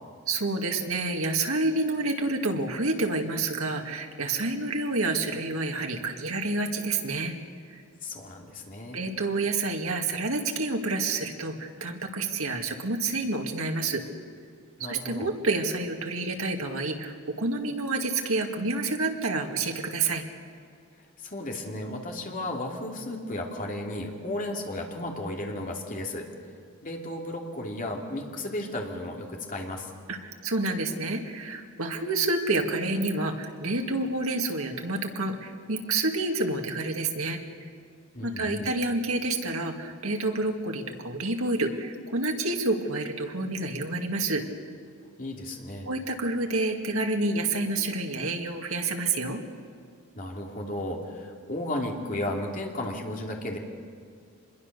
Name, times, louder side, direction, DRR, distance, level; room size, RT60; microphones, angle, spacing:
voice 1, 0.3-7.4 7.7-7.8 8.9-14.0 14.8-20.2 30.1-37.4 38.2-44.4 45.9-49.4, right 2 dB, 80° right, 3 dB, 2.2 m, -28 dB
voice 2, 8.0-9.0 14.8-15.3 21.2-26.3 26.8-29.9 38.1-38.7 45.2-45.9 50.1-53.6, left 1 dB, 40° left, 1 dB, 2.9 m, -34 dB
26.0 x 21.5 x 6.8 m, 2.3 s
head